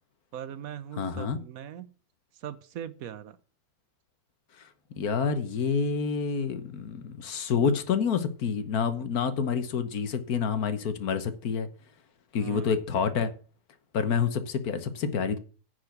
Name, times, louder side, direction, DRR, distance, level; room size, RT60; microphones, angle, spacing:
voice 1, 0.3-1.9 2.3-3.4 12.4-12.7, right 10 dB, 70° right, 1.2 m, -40 dB
voice 2, 1.0-1.4 4.9-11.7 12.3-13.3 13.9-15.4, left 6 dB, 80° left, 1.5 m, -28 dB
10.0 x 4.9 x 8.0 m
omnidirectional pair, 1.6 m